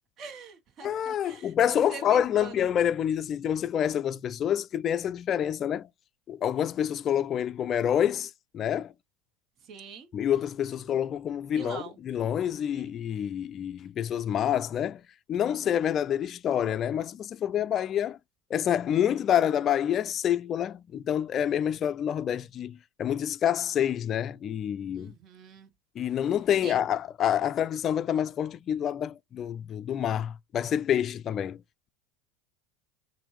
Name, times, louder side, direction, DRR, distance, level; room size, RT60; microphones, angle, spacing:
voice 1, 0.2-2.7 9.6-10.1 11.5-12.0 12.8-12.9 24.9-25.7 26.6-26.8, right 5 dB, 45° right, 1.4 m, -43 dB
voice 2, 0.8-5.9 6.3-8.9 10.1-15.0 15.3-18.2 18.5-25.1 26.0-31.6, left 9 dB, 40° left, 0.3 m, -27 dB
5.9 x 2.6 x 3.3 m
hypercardioid pair, 95°, 0 cm